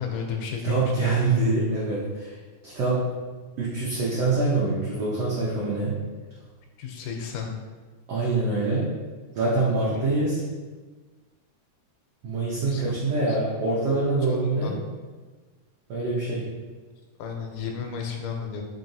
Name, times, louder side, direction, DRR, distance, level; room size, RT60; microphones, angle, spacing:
voice 1, 0.0-1.3 6.8-7.6 9.7-10.0 12.6-13.0 13.3-13.4 14.3-14.8 17.2-18.6, left 6 dB, 85° left, 2 dB, 2.1 m, -33 dB
voice 2, 0.6-2.4 2.6-3.0 3.6-6.0 8.1-9.0 9.3-10.4 12.2-14.7 15.9-16.5, right 3 dB, 80° right, -7 dB, 1.3 m, -25 dB
5.0 x 2.8 x 2.6 m, 1.4 s
omnidirectional pair, 3.6 m